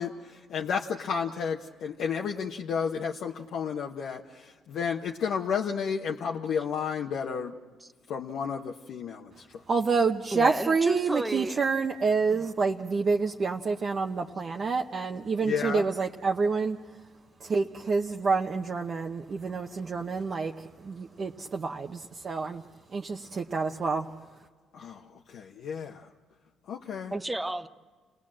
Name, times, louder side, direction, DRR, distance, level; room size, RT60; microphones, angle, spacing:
voice 1, 0.0-7.5 8.1-9.4 15.4-15.8 24.7-25.0 25.3-26.1 26.7-27.1, left 6 dB, 70° left, -1 dB, 1.1 m, -32 dB
voice 2, 9.7-16.8 17.4-22.6 22.9-24.1, right 4 dB, 45° right, 1 dB, 1.0 m, -28 dB
voice 3, 10.3-11.7 12.3-12.5 27.1-27.7, right 2 dB, 10° right, 8 dB, 0.9 m, -32 dB
29.0 x 18.5 x 7.6 m, 1.5 s
cardioid pair, 85°, 0 cm